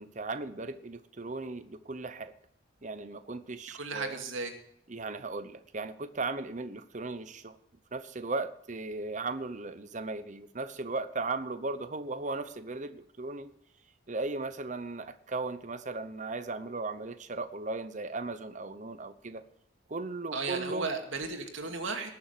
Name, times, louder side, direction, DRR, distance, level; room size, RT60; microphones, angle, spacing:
voice 1, 0.0-2.3 2.8-4.2 4.9-7.6 7.9-13.5 14.1-19.5 19.9-20.9, right 3 dB, 40° right, 0.8 m, -37 dB
voice 2, 3.7-4.6 20.3-22.1, right 4 dB, 80° right, 2.3 m, -35 dB
19.0 x 7.0 x 6.8 m
head